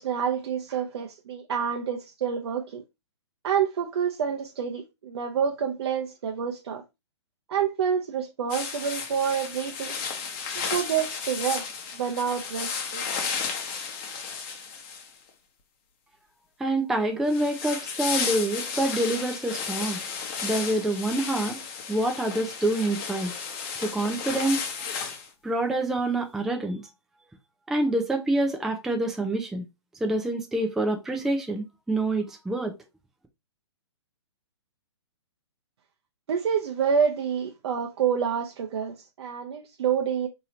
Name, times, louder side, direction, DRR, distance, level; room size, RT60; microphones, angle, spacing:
voice 1, 0.0-2.8 3.4-6.8 7.5-10.0 10.6-11.7 11.9-13.0 36.3-40.3, right 7 dB, 65° right, 0.6 m, -28 dB
sound 1, 8.5-15.3 17.3-25.3, left 6 dB, 35° left, 0.9 m, -33 dB
voice 2, 16.6-20.0 20.4-21.6 21.9-23.3 23.8-24.7 25.4-26.8 27.7-29.6 30.0-32.8, right 1 dB, ahead, 0.4 m, -26 dB
3.8 x 2.8 x 2.8 m
hypercardioid pair, 130°, 15 cm